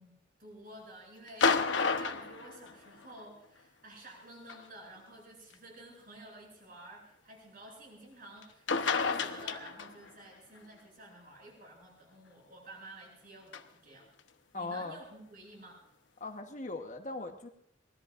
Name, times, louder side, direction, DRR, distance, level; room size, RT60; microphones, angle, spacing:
voice 1, 0.0-14.1 14.5-15.8, right 1 dB, 50° right, -1 dB, 7.9 m, -52 dB
sound 1, 1.3-3.2 4.5-4.6 5.5-5.6 8.4-8.5 8.7-10.1 13.5-13.6, left 5 dB, 80° left, 0.9 m, -30 dB
voice 2, 14.5-15.0 16.2-17.5, left 3 dB, 40° left, 4 dB, 1.2 m, -39 dB
24.0 x 20.0 x 2.5 m, 0.75 s
head